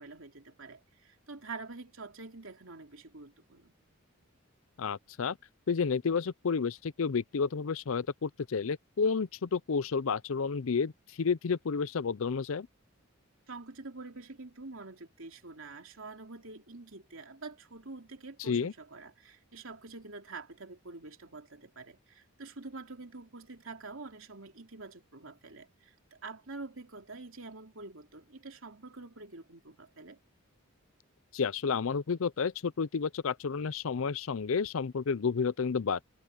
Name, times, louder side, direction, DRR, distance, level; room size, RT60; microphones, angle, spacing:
voice 1, 0.0-3.7 13.5-30.2, right 3 dB, 70° right, 2.9 m, -46 dB
voice 2, 4.8-5.4 5.7-10.9 11.2-12.7 18.4-18.7 31.3-36.0, left 5 dB, 70° left, 0.5 m, -31 dB
head